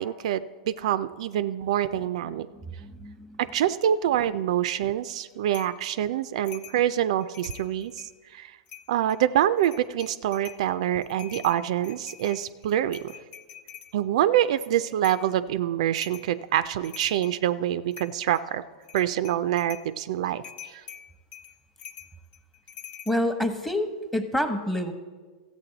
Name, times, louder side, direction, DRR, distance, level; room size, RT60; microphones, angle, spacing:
voice 1, 0.0-2.5 3.4-8.6 8.9-13.1 13.9-18.6 18.9-20.8, right 11 dB, 70° right, 13 dB, 0.4 m, -26 dB
voice 2, 2.3-3.4 23.1-24.9, left 1 dB, 5° left, 8 dB, 0.9 m, -28 dB
sound 1, 5.5-5.8 6.4-6.8 7.2-8.1 8.7-9.2 9.6-10.6 11.0-13.9 15.0-15.3 15.9-16.3 16.7-17.4 17.9-18.4 18.8-19.9 20.4-23.2, left 8 dB, 40° left, 0.7 m, -45 dB
14.0 x 8.3 x 3.9 m, 1.4 s
hypercardioid pair, 120°, 4 cm